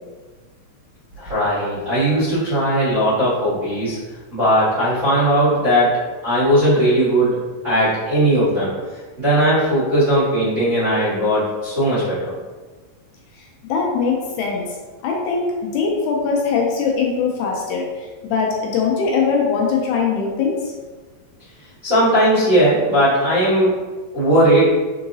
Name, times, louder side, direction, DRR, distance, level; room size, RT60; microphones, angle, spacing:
voice 1, 1.2-4.0 4.3-7.4 7.6-8.7 9.2-12.4 21.8-23.7 24.1-24.7, right 1 dB, 40° right, -14 dB, 1.1 m, -18 dB
voice 2, 13.7-14.6 15.0-20.7, left 5 dB, 80° left, -1 dB, 1.9 m, -21 dB
4.6 x 3.8 x 2.6 m, 1.3 s
omnidirectional pair, 3.7 m